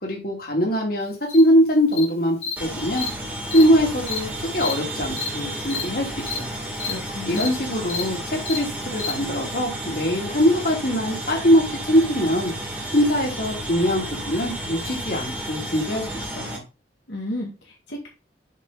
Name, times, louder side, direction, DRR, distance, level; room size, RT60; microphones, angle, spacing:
voice 1, 0.0-3.1 3.5-6.6 7.3-12.5 12.9-16.6, equal, 55° left, 0 dB, 2.8 m, -22 dB
Cricket, 1.3-1.4 1.9-2.0 2.4-2.5 3.0-3.1 3.5-3.6 4.1-4.2 4.6-4.7 5.2-5.3 5.6-5.8 6.3-6.4 6.7-6.9 7.3-7.5 7.8-8.0 8.4-8.6 9.0-9.1, left 6 dB, 35° left, 2.4 m, -29 dB
sound 1, 2.6-16.6, right 1 dB, 10° right, 1.9 m, -32 dB
voice 2, 6.8-7.5 17.1-18.1, left 1 dB, 80° left, -1 dB, 1.8 m, -32 dB
7.4 x 5.1 x 4.0 m, 0.31 s
head